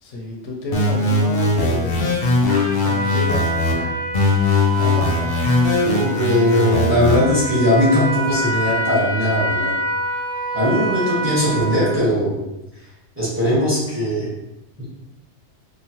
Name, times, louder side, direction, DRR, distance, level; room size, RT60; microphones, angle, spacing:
voice 1, 0.0-2.1 2.8-4.0 4.7-5.3, left 2 dB, 85° left, 1 dB, 0.9 m, -29 dB
sound 1, 0.7-3.7 4.1-7.2, left 2 dB, 60° left, 0.7 m, -19 dB
Trumpet, 2.5-12.0, right 2 dB, 60° right, 0.8 m, -26 dB
voice 2, 5.8-9.7 10.5-12.4 13.2-14.3 14.8-14.9, left 1 dB, 10° right, -8 dB, 0.9 m, -19 dB
3.0 x 2.0 x 2.8 m, 0.89 s
omnidirectional pair, 1.2 m